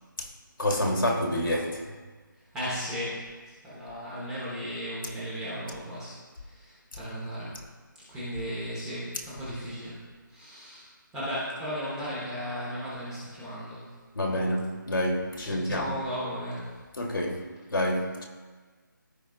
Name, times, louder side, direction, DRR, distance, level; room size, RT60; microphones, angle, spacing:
voice 1, 0.6-2.0 14.1-16.0 17.0-18.2, left 1 dB, 80° left, 1.8 m, -28 dB
voice 2, 2.5-3.3 3.6-6.1 6.4-7.6 8.1-10.0 10.3-13.9 15.4-16.7, equal, 5° right, 1.3 m, -35 dB
14.5 x 5.0 x 2.5 m
figure-of-eight pair, 170°, 11 cm